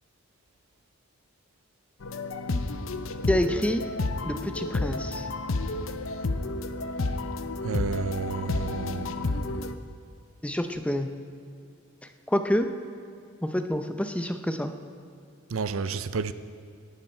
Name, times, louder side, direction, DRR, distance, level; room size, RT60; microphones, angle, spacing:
sound 1, 2.0-9.7, left 2 dB, 70° left, 0.7 m, -31 dB
voice 1, 3.3-3.8 4.2-5.3 10.4-11.1 12.3-12.7 13.4-14.7, equal, 5° left, 7 dB, 0.7 m, -27 dB
voice 2, 7.6-9.6 15.5-16.3, right 5 dB, 75° right, 13 dB, 0.6 m, -31 dB
18.0 x 12.0 x 4.4 m, 2.5 s
head